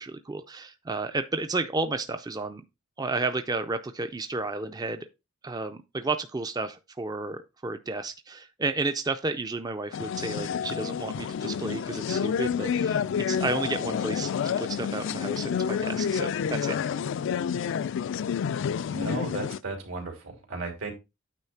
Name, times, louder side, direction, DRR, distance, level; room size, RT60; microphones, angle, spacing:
voice 1, 0.0-2.6 3.0-5.1 5.4-16.9, right 3 dB, 20° right, 0.4 m, -32 dB
sound 1, 9.9-19.6, left 7 dB, 60° left, 0.3 m, -29 dB
voice 2, 18.9-20.9, right 3 dB, 80° right, 3.0 m, -35 dB
9.1 x 3.2 x 5.7 m
head